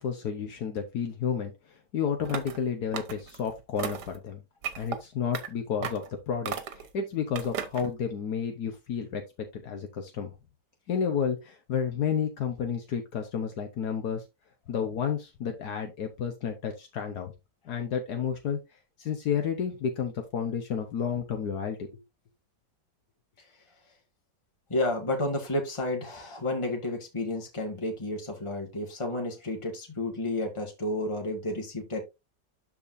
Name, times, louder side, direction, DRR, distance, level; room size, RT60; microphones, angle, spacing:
voice 1, 0.0-1.5 1.9-4.4 4.8-9.2 9.5-10.3 10.9-14.2 14.7-17.3 17.6-18.6 19.0-22.0, left 7 dB, 75° left, 5 dB, 1.6 m, -31 dB
sound 1, 2.2-2.6 2.9-3.4 3.8-4.2 4.6-5.0 5.3-5.5 5.8-6.1 6.4-6.9 7.3-7.9, right 7 dB, 90° right, 1.7 m, -35 dB
voice 2, 24.7-32.0, left 1 dB, 20° left, 1 dB, 2.0 m, -31 dB
12.0 x 4.5 x 2.6 m, 0.22 s
omnidirectional pair, 1.7 m